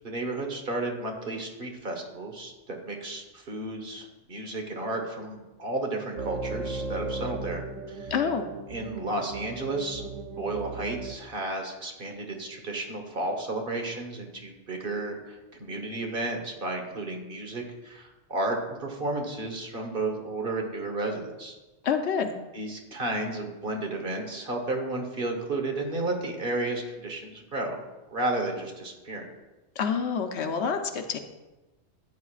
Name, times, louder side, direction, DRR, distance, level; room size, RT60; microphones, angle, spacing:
voice 1, 0.0-7.6 7.9-8.1 8.7-10.1 10.4-21.5 22.5-29.3, right 2 dB, 50° right, 3 dB, 1.4 m, -32 dB
sound 1, 6.2-11.2, right 3 dB, 90° right, 1.1 m, -36 dB
voice 2, 8.1-8.5 21.8-22.4 29.8-31.2, left 6 dB, 70° left, 7 dB, 1.0 m, -27 dB
13.5 x 8.5 x 2.4 m, 1.1 s
omnidirectional pair, 1.2 m